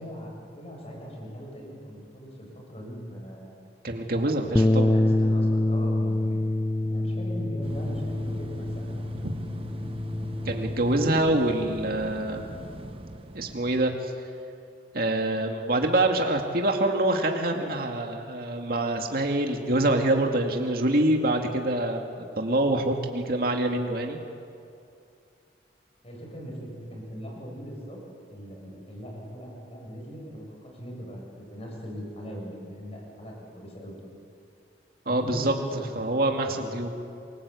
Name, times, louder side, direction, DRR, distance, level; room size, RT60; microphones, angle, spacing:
voice 1, 0.0-3.5 4.5-9.1 26.0-28.0 28.3-34.0 35.1-35.9 36.5-36.8, equal, 35° left, -1 dB, 7.6 m, -40 dB
voice 2, 3.8-4.9 9.2-9.3 10.5-12.4 13.3-14.1 14.9-22.1 22.4-24.2 35.1-35.5 36.0-36.9, right 1 dB, 55° right, 3 dB, 2.3 m, -25 dB
Bass guitar, 4.5-10.8, left 1 dB, 15° left, 0.5 m, -26 dB
sound 1, 7.6-13.9, right 1 dB, 30° right, 1.2 m, -40 dB
27.5 x 23.5 x 8.5 m, 2.5 s
head